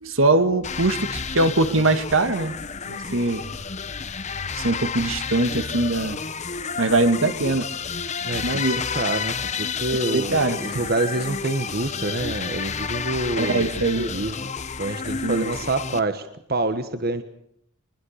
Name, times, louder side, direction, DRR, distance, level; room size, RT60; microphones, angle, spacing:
voice 1, 0.0-2.5 2.9-3.4 4.6-6.2 6.8-7.7 8.4-8.8 10.1-10.8 13.4-14.1 15.0-15.5, right 2 dB, 70° right, 9 dB, 1.9 m, -22 dB
sound 1, 0.6-16.0, left 5 dB, 35° left, 1.0 m, -31 dB
voice 2, 8.2-13.7 14.0-14.5 14.8-17.2, right 2 dB, 50° right, 9 dB, 1.5 m, -27 dB
23.5 x 21.5 x 6.6 m, 0.73 s
head